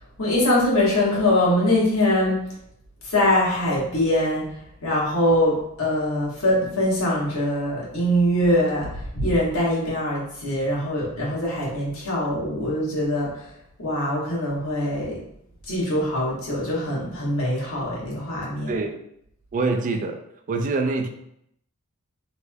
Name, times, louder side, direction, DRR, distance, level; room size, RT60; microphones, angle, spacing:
voice 1, 0.2-2.4 3.0-4.4 4.8-13.3 13.8-15.2 15.7-18.7, left 1 dB, 80° left, -5 dB, 1.3 m, -23 dB
voice 2, 18.7-19.0 19.5-20.2 20.5-21.1, right 3 dB, 40° right, 5 dB, 0.3 m, -24 dB
3.3 x 3.1 x 2.2 m, 0.75 s
head